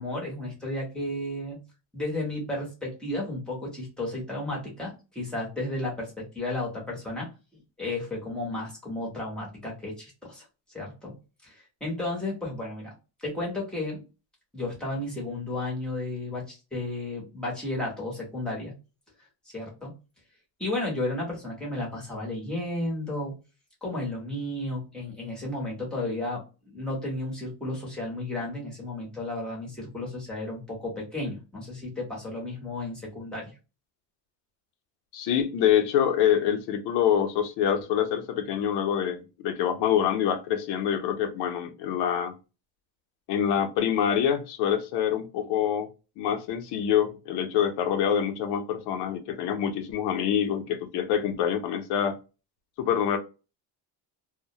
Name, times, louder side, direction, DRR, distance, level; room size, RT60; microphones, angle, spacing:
voice 1, 0.0-1.6 1.9-7.3 7.8-10.4 10.7-11.1 11.4-12.9 13.2-14.0 14.5-18.7 19.5-19.9 20.6-23.3 23.8-26.4 26.7-33.5, left 2 dB, ahead, 0.7 m, -33 dB
voice 2, 35.1-42.3 43.3-45.9 46.2-52.2 52.8-53.2, left 9 dB, 70° left, 0.7 m, -26 dB
2.2 x 2.0 x 2.7 m
cardioid pair, 180°, 41 cm